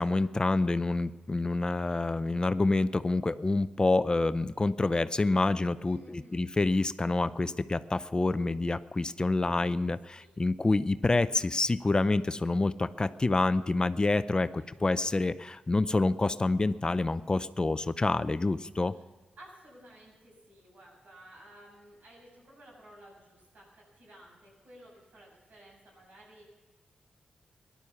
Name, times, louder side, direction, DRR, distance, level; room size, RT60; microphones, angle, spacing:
voice 1, 0.0-18.9, left 2 dB, 30° left, 13 dB, 0.6 m, -27 dB
voice 2, 5.9-6.5 10.2-10.3 14.6-14.7 18.9-19.0 19.4-26.6, right 1 dB, 70° right, -4 dB, 7.8 m, -54 dB
17.5 x 11.5 x 7.1 m, 1.2 s
cardioid pair, 55°, 3 cm